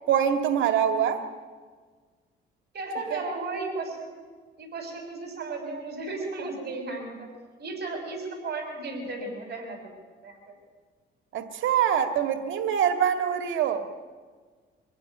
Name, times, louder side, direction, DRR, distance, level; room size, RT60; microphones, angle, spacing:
voice 1, 0.1-1.2 3.1-3.2 11.3-13.9, right 9 dB, 80° right, 7 dB, 1.9 m, -24 dB
voice 2, 2.7-4.1 4.6-7.3 7.6-9.9 10.2-10.3, right 3 dB, 55° right, 4 dB, 6.3 m, -35 dB
25.5 x 16.5 x 10.0 m, 1.5 s
cardioid pair, 90°, 20 cm